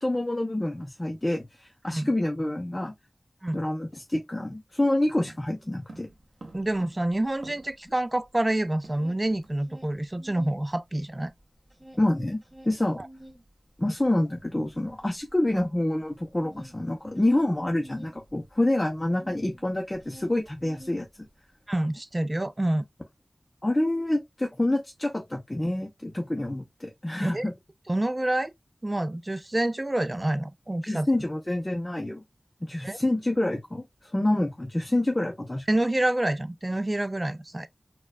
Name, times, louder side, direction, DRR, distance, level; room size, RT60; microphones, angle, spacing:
voice 1, 0.0-2.9 3.5-6.1 12.0-12.4 12.7-13.0 13.8-21.1 23.6-27.5 30.8-32.2 32.6-35.6, left 1 dB, 25° left, 0.6 m, -27 dB
sound 1, 5.3-7.9 8.2-8.3 8.5-9.6 9.8-10.0 10.4-10.6, right 2 dB, 90° right, 0.8 m, -49 dB
sound 2, 6.1-6.2 6.5-8.5 8.7-10.6 11.0-19.6 19.9-21.4, right 1 dB, 5° right, 1.8 m, -50 dB
voice 2, 6.5-11.3 13.0-13.1 21.7-22.8 27.2-27.4 27.9-28.5 28.8-31.1 32.8-33.0 35.7-37.7, right 1 dB, 30° right, 0.4 m, -27 dB
4.3 x 2.3 x 2.3 m
wide cardioid pair, 50°, 0 cm